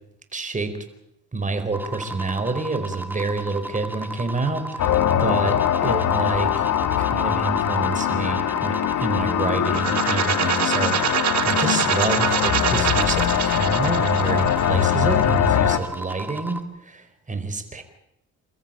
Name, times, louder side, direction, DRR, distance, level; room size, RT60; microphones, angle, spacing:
voice 1, 0.3-0.7 1.3-6.6 7.0-17.8, right 3 dB, 25° right, 8 dB, 4.5 m, -28 dB
sound 1, 1.7-16.6, right 1 dB, 5° right, 2.4 m, -35 dB
sound 2, 4.8-15.8, left 10 dB, 75° left, 1.7 m, -22 dB
sound 3, 9.7-15.5, right 10 dB, 65° right, 1.6 m, -25 dB
29.0 x 14.0 x 8.9 m, 0.81 s
cardioid pair, 90°, 30 cm